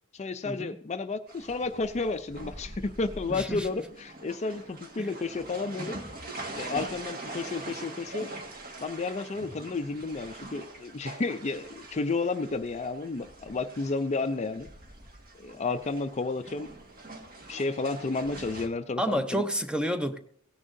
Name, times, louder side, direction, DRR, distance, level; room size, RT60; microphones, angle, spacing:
voice 1, 0.1-6.0 6.5-8.3 8.8-14.7 15.4-16.7 17.5-19.4, left 3 dB, 30° left, 9 dB, 0.5 m, -32 dB
sound 1, 1.3-18.7, right 2 dB, 45° right, 1.6 m, -43 dB
voice 2, 3.3-3.7 5.0-5.1 19.0-20.3, equal, 5° right, 9 dB, 0.7 m, -30 dB
16.5 x 10.0 x 2.6 m, 0.63 s
head